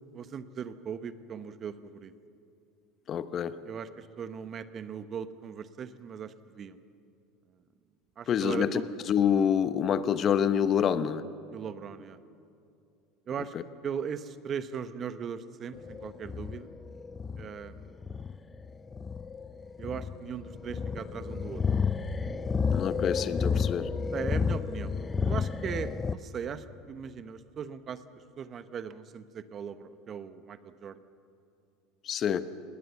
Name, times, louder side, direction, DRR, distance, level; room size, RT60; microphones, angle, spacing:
voice 1, 0.1-2.1 3.6-6.8 8.2-8.9 11.5-12.2 13.3-13.5 13.8-16.7 17.4-18.0 19.8-21.6 24.1-24.9 25.3-28.0 28.4-31.0, right 7 dB, 40° right, 13 dB, 1.0 m, -38 dB
voice 2, 3.1-3.6 8.3-8.8 9.1-11.2 13.5-13.6 22.7-23.9 32.0-32.4, left 8 dB, 40° left, 13 dB, 1.0 m, -27 dB
sound 1, 15.7-26.1, left 5 dB, 25° left, 0.6 m, -31 dB
20.0 x 19.0 x 7.1 m, 2.5 s
hypercardioid pair, 80°, 0 cm